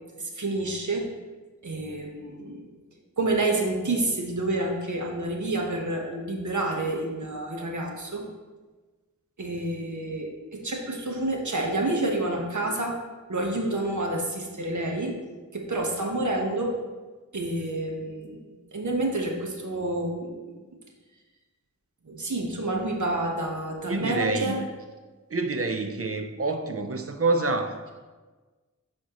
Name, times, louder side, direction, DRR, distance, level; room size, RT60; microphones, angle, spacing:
voice 1, 0.2-1.1 1.6-2.7 3.2-8.2 9.4-13.0 13.3-15.1 15.5-16.7 17.3-18.4 18.7-20.5 22.0-24.6, right 2 dB, 70° right, 1 dB, 1.1 m, -29 dB
voice 2, 23.9-24.6 25.3-27.9, right 3 dB, 45° right, 7 dB, 0.6 m, -27 dB
11.0 x 4.2 x 3.0 m, 1.3 s
wide cardioid pair, 70°, 31 cm